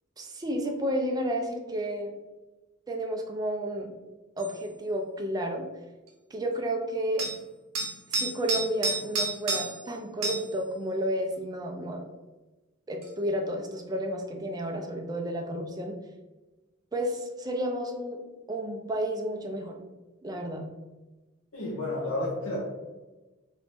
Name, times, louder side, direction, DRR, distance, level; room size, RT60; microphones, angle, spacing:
voice 1, 0.2-2.1 2.9-3.9 4.4-5.7 6.3-7.2 8.1-12.0 12.9-16.0 16.9-18.2 18.5-19.8 20.2-20.6, right 1 dB, 20° right, 2 dB, 0.4 m, -31 dB
sound 1, 4.4-4.6 7.2-7.4 7.7-9.9 10.2-10.5 13.0-13.1, right 2 dB, 70° right, 0.9 m, -30 dB
voice 2, 21.5-22.6, left 2 dB, 80° left, -4 dB, 0.8 m, -31 dB
2.9 x 2.6 x 3.4 m, 1.2 s
head